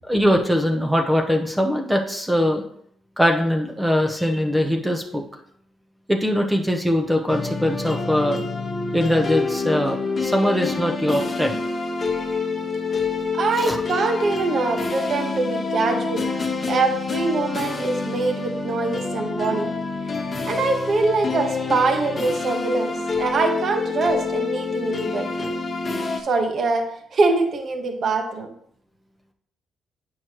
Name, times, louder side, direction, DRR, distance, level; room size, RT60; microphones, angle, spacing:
voice 1, 0.0-2.6 3.2-5.2 6.1-8.5 8.9-11.6 13.6-13.8, equal, 5° right, 3 dB, 0.9 m, -21 dB
sound 1, 7.3-26.2, left 4 dB, 35° left, 1.1 m, -27 dB
voice 2, 13.3-16.3 16.7-19.7 20.5-25.5 26.2-28.5, right 3 dB, 55° right, 4 dB, 1.2 m, -23 dB
8.7 x 6.2 x 3.0 m, 0.66 s
cardioid pair, 90°, 0 cm